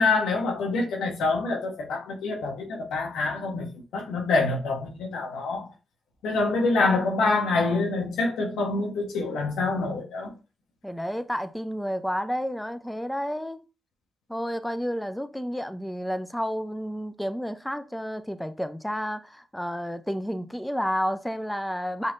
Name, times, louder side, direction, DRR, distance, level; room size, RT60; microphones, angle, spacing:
voice 1, 0.0-3.7 3.9-5.7 6.2-10.3, left 3 dB, 90° left, 1.2 m, -26 dB
voice 2, 10.8-13.6 14.3-22.1, equal, 5° left, 0.5 m, -31 dB
5.5 x 3.2 x 2.6 m
supercardioid pair, 55°, 0 cm